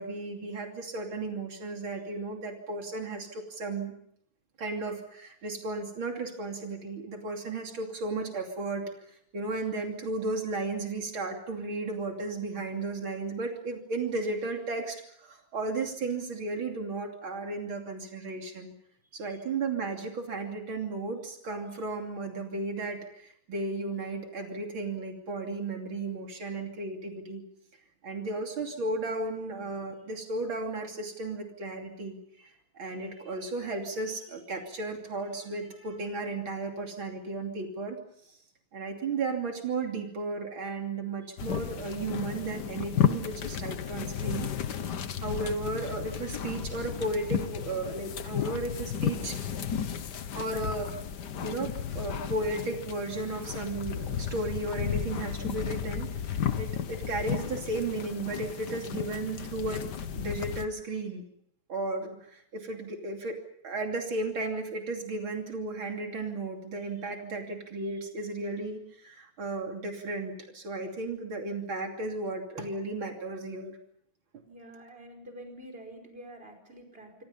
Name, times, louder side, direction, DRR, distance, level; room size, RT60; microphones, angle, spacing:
voice 1, 0.0-3.9 4.6-18.7 19.1-27.4 28.0-38.0 38.3-38.4 38.7-44.5 45.2-49.4 50.4-50.9 51.4-59.8 60.1-61.2 61.7-63.4 63.6-73.8, right 3 dB, 85° right, 2 dB, 3.7 m, -34 dB
sound 1, 41.4-60.7, left 8 dB, 60° left, 1.7 m, -33 dB
voice 2, 74.4-77.2, right 1 dB, 25° right, 4 dB, 5.4 m, -47 dB
27.0 x 26.0 x 5.6 m, 0.70 s
omnidirectional pair, 2.2 m